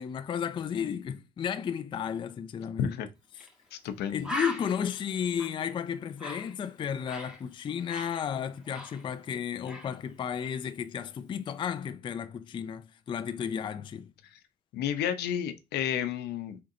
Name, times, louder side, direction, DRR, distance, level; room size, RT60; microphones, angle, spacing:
voice 1, 0.0-3.0 3.3-3.5 4.1-14.1, left 8 dB, 30° left, 0.3 m, -33 dB
Bird, 3.4-3.5 3.8-3.9 4.2-7.4 7.7-9.4 9.7-10.0, left 1 dB, 5° right, 1.2 m, -39 dB
voice 2, 3.7-4.3 14.3-14.4 14.7-16.6, left 9 dB, 75° left, 0.7 m, -31 dB
4.4 x 3.8 x 2.7 m
cardioid pair, 110°, 17 cm